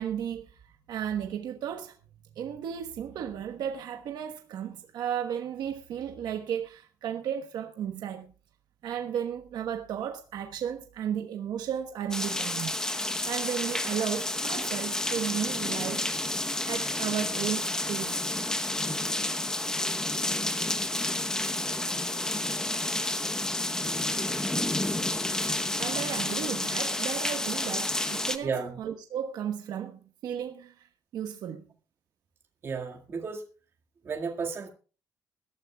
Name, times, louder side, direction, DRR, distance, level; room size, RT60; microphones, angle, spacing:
voice 1, 0.0-1.9 2.3-8.3 8.8-12.8 13.3-16.1 16.7-18.2 25.8-28.5 28.8-30.9 31.1-31.6, right 9 dB, 70° right, 1.2 m, -34 dB
sound 1, 12.1-28.4, left 1 dB, 10° left, 0.9 m, -30 dB
voice 2, 28.4-28.8 32.6-33.4 34.0-34.7, right 5 dB, 35° right, 1.9 m, -33 dB
21.5 x 13.0 x 2.3 m
cardioid pair, 175°, 7 cm